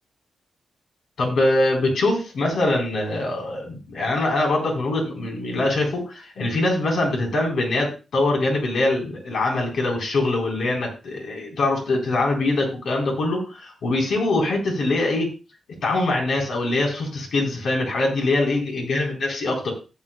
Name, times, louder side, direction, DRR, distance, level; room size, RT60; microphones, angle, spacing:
voice 1, 1.2-15.3 15.8-19.7, left 2 dB, 80° left, 0 dB, 4.0 m, -23 dB
14.5 x 9.9 x 2.3 m, 0.31 s
cardioid pair, 100°, 0 cm